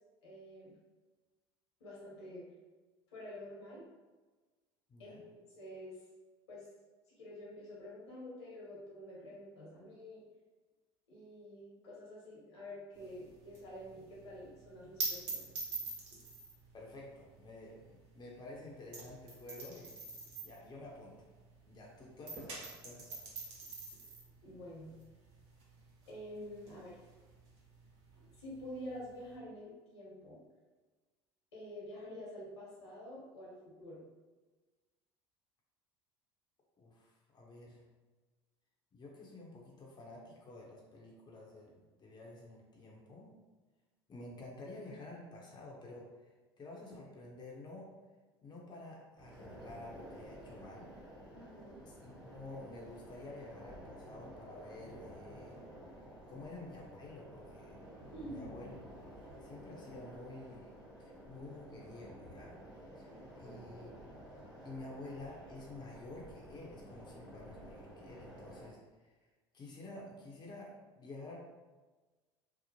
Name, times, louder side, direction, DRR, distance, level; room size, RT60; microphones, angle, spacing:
voice 1, 0.2-0.7 1.8-2.4 3.1-3.9 5.0-6.0 6.5-6.7 7.2-10.2 11.1-15.4 24.4-24.9 26.1-27.0 28.4-30.4 31.5-34.0 51.3-51.8 58.1-58.4 63.4-64.0, equal, 80° left, -5 dB, 1.1 m, -48 dB
voice 2, 4.9-5.2 16.7-20.1 20.4-21.1 21.7-23.2 36.8-37.8 38.9-43.3 44.1-46.1 46.6-47.9 48.4-50.9 51.9-55.6 56.3-57.8 58.2-58.8 59.4-60.7 61.0-62.5 63.0-63.1 63.4-63.9 64.6-68.8 69.5-71.4, left 2 dB, 30° left, -3 dB, 0.7 m, -50 dB
sound 1, 13.0-21.8 22.1-29.3, right 3 dB, 70° right, 0.9 m, -45 dB
sound 2, 49.2-68.7, equal, 5° right, 1.0 m, -52 dB
2.8 x 2.0 x 2.9 m, 1.3 s
hypercardioid pair, 70°, 14 cm